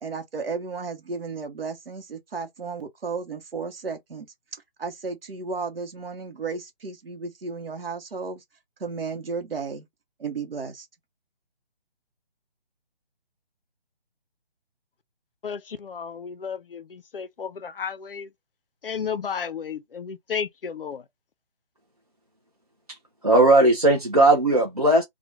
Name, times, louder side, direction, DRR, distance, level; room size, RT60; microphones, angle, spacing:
voice 1, 0.0-4.3 4.8-8.4 8.8-9.9 10.2-10.9, right 4 dB, 65° right, 0.9 m, -33 dB
voice 2, 15.4-18.3 18.8-21.0, left 7 dB, 60° left, 0.5 m, -33 dB
voice 3, 23.2-25.0, right 2 dB, 40° right, 0.4 m, -17 dB
2.4 x 2.2 x 2.9 m
hypercardioid pair, 180°, 32 cm